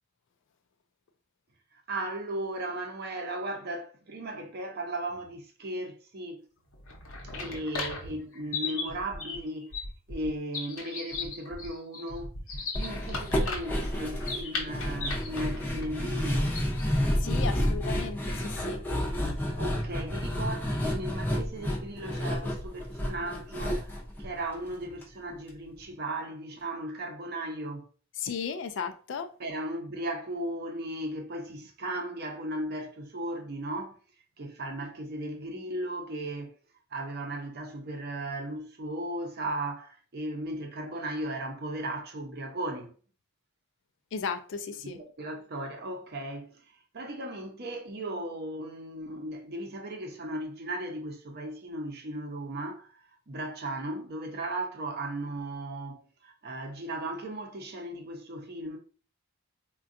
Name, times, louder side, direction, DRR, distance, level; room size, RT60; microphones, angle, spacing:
voice 1, 1.9-6.4 7.3-9.7 10.1-16.5 19.6-23.9 24.2-27.8 29.4-34.0 34.4-36.5 36.9-42.9 44.8-46.6 46.9-53.0 53.3-58.8, right 1 dB, 50° right, 0.6 m, -36 dB
sound 1, 6.7-17.0, left 3 dB, 80° left, 0.8 m, -37 dB
sound 2, 12.7-25.0 25.3-25.4 25.8-25.9, equal, 10° left, 0.5 m, -30 dB
voice 2, 17.2-18.8 28.2-29.3 44.1-45.0, left 6 dB, 60° left, 0.3 m, -35 dB
3.6 x 2.2 x 2.5 m
head